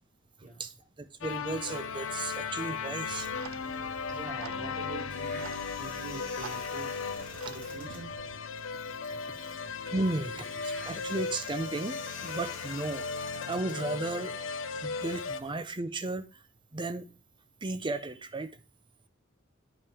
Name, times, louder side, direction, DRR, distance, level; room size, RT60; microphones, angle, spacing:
voice 1, 0.6-3.3 9.1-9.6 9.9-14.3 14.8-16.4 16.7-17.1 17.6-18.6, right 2 dB, 25° right, 0.6 m, -35 dB
sound 1, 1.2-15.4, left 5 dB, 80° left, 0.5 m, -37 dB
Clock, 3.1-8.4, right 8 dB, 85° right, 0.3 m, -48 dB
voice 2, 4.1-5.4 5.7-7.0 7.4-8.1, right 2 dB, 45° right, 3.9 m, -44 dB
sound 2, 4.6-14.5, left 1 dB, 5° left, 2.1 m, -49 dB
8.8 x 5.5 x 3.3 m
head